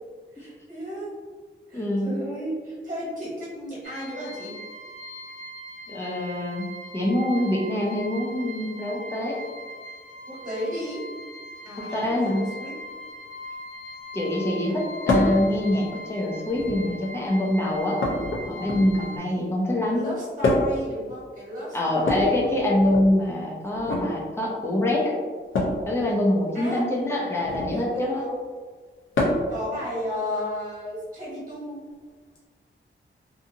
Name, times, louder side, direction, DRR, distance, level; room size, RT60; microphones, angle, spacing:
voice 1, 0.3-1.1 1.7-4.5 10.2-11.0 11.6-12.7 19.9-22.5 26.5-26.8 27.7-28.4 29.3-31.8, equal, 40° right, -8 dB, 1.3 m, -33 dB
voice 2, 1.7-2.1 5.9-6.7 6.9-9.4 11.8-12.4 14.1-18.0 18.5-20.1 21.7-25.1 25.9-28.2, left 1 dB, 10° left, -3 dB, 0.5 m, -25 dB
sound 1, 3.8-19.2, equal, 40° left, 1.2 m, -40 dB
sound 2, 15.1-15.4 16.5-17.0 18.0-19.1 20.4-20.9 22.0-23.1 23.7-24.1 25.5-25.8 27.4-27.8 29.1-29.6 31.0-31.1 32.3-32.4, left 2 dB, 70° left, 0.6 m, -25 dB
2.6 x 2.6 x 2.5 m, 1.5 s
wide cardioid pair, 165°, 21 cm